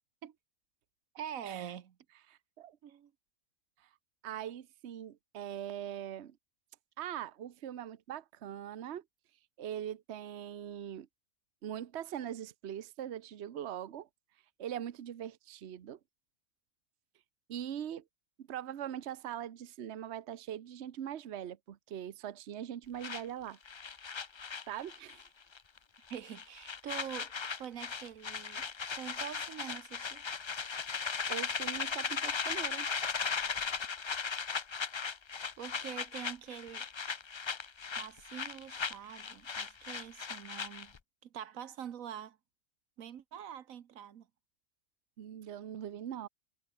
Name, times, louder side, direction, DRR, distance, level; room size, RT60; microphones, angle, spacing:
voice 1, 1.1-1.9 2.8-3.1 26.1-30.2 35.6-36.8 38.0-40.9 41.2-42.4 43.0-44.3, right 9 dB, 85° right, 1.4 m, -45 dB
voice 2, 2.3-2.8 4.2-6.4 7.0-9.0 9.6-11.1 11.6-14.1 14.6-16.0 17.5-18.0 18.4-23.6 24.7-25.2 31.3-32.9 45.2-46.3, right 10 dB, 60° right, 1.1 m, -41 dB
sound 1, 23.0-25.3 25.5-25.8 26.1-41.0, left 5 dB, 45° left, 0.3 m, -37 dB
omnidirectional pair, 1.4 m